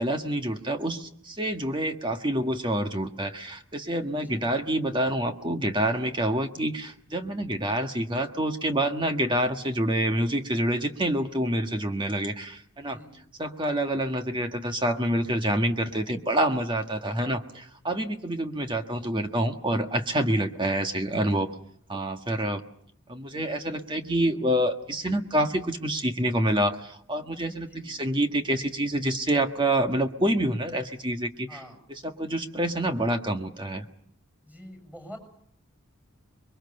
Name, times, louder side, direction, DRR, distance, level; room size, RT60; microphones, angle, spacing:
voice 1, 0.0-13.0 13.4-21.5 21.9-22.6 23.1-31.6 32.2-33.9, right 1 dB, 20° right, 5 dB, 1.5 m, -27 dB
voice 2, 4.1-4.8 12.8-13.2 17.1-17.5 25.1-25.4 27.4-28.0 31.5-31.8 34.4-35.2, equal, 5° right, 4 dB, 7.2 m, -47 dB
26.5 x 23.0 x 6.8 m, 0.65 s
head